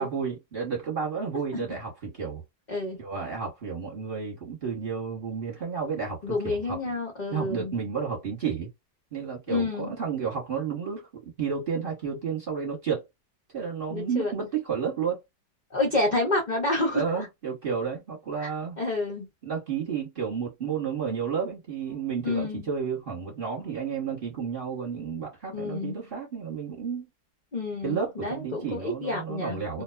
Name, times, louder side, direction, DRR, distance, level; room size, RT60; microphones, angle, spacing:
voice 1, 0.0-2.4 3.0-6.9 7.3-8.7 9.1-13.0 13.5-15.2 16.1-16.2 16.9-18.8 19.4-27.1 27.8-29.8, right 6 dB, 35° right, 1.1 m, -31 dB
voice 2, 6.2-7.8 9.5-9.9 13.9-14.3 15.7-17.2 18.4-18.5 18.8-19.3 22.2-22.7 25.5-26.0 27.5-29.8, left 2 dB, 65° left, 0.4 m, -29 dB
2.8 x 2.2 x 2.2 m
omnidirectional pair, 1.9 m